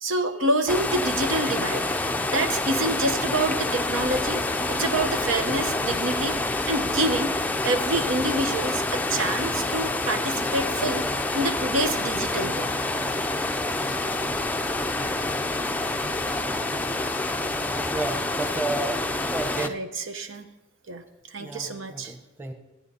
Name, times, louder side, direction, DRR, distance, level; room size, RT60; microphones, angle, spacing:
voice 1, 0.0-1.9 2.3-7.3 7.6-11.0 11.3-12.7 15.0-15.1 19.6-20.5 20.9-21.0 21.3-22.1, right 2 dB, 80° right, 7 dB, 0.9 m, -27 dB
sound 1, 0.7-19.7, left 2 dB, 10° left, 0.4 m, -27 dB
voice 2, 17.9-19.0 19.3-19.8 21.4-22.5, right 2 dB, 10° right, 5 dB, 1.1 m, -31 dB
15.0 x 9.3 x 4.2 m, 1.0 s
head